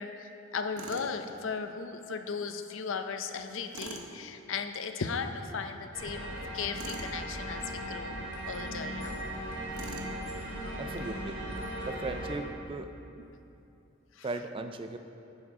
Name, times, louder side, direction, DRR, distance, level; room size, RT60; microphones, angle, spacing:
voice 1, 0.0-8.2 8.5-9.3 14.1-14.3, left 5 dB, 60° left, 7 dB, 0.6 m, -36 dB
Tools, 0.8-1.1 3.7-4.1 6.7-7.1 9.7-10.2, right 3 dB, 80° right, 1.0 m, -43 dB
sound 1, 5.9-12.4, equal, 60° right, 1.9 m, -38 dB
voice 2, 10.8-11.4 11.8-12.9 14.2-15.0, right 3 dB, 25° right, 8 dB, 0.3 m, -37 dB
10.0 x 9.6 x 3.7 m, 2.8 s
head